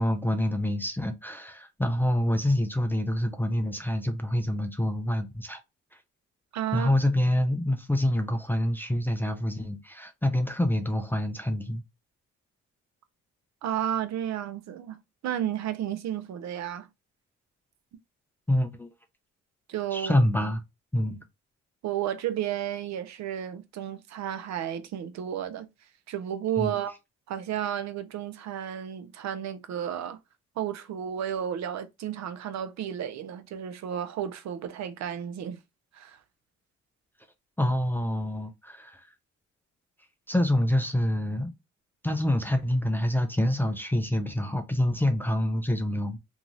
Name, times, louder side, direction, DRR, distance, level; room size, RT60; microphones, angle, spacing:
voice 1, 0.0-5.6 6.7-11.8 18.5-18.9 19.9-20.6 20.9-21.2 26.6-26.8 37.6-39.0 40.3-41.5 42.0-46.2, left 1 dB, 5° left, 0.4 m, -26 dB
voice 2, 6.5-6.9 13.6-15.0 15.2-16.9 19.7-20.2 21.8-25.7 26.1-26.9 27.3-30.2 30.6-35.6 35.9-36.2, right 10 dB, 65° right, 0.5 m, -32 dB
2.7 x 2.3 x 3.0 m
cardioid pair, 90°, 30 cm